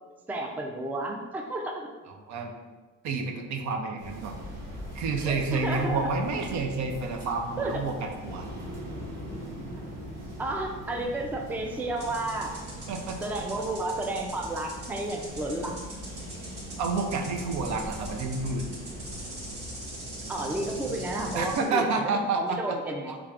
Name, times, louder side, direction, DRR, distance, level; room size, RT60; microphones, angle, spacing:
voice 1, 0.3-1.9 5.2-6.0 7.6-7.8 10.4-12.5 13.2-15.8 20.3-23.2, right 2 dB, 5° right, 2 dB, 0.3 m, -32 dB
voice 2, 3.0-4.4 4.9-8.5 12.9-13.2 16.8-18.6 21.3-22.8, right 4 dB, 65° right, 4 dB, 0.5 m, -29 dB
sound 1, 4.0-21.5, equal, 85° right, 1.1 m, -41 dB
sound 2, 12.0-21.7, right 1 dB, 50° right, 1.2 m, -44 dB
3.4 x 3.2 x 2.4 m, 1.3 s
cardioid pair, 90°, 30 cm